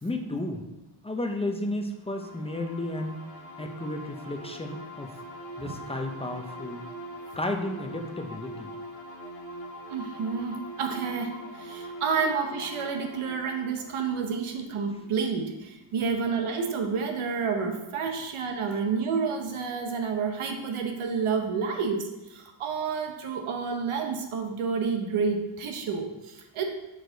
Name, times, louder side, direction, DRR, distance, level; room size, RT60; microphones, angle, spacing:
voice 1, 0.0-0.6 1.0-3.2 3.6-5.1 5.6-6.8 7.3-8.7, left 1 dB, 15° left, 4 dB, 0.5 m, -33 dB
sound 1, 2.0-15.5, right 1 dB, 30° left, 1.3 m, -43 dB
voice 2, 9.9-26.6, right 5 dB, 85° right, 4 dB, 1.0 m, -30 dB
6.5 x 4.8 x 3.9 m, 1.0 s
wide cardioid pair, 135°, 49 cm